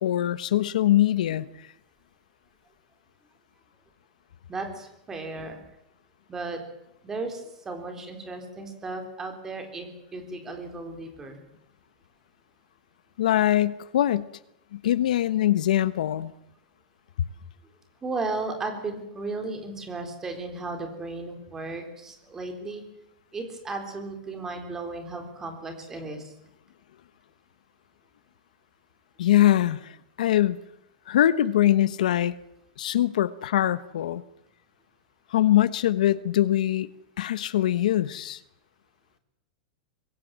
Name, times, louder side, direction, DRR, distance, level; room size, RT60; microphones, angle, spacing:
voice 1, 0.0-1.4 13.2-14.3 14.7-16.3 29.2-30.6 31.1-32.3 32.8-34.2 35.3-36.9 37.2-38.4, left 12 dB, 75° left, 14 dB, 1.1 m, -23 dB
voice 2, 4.5-5.6 6.3-6.6 7.0-11.4 18.0-22.8 23.3-26.3, right 3 dB, 10° right, 4 dB, 3.8 m, -35 dB
25.0 x 22.5 x 7.6 m, 0.81 s
supercardioid pair, 175°, 4 cm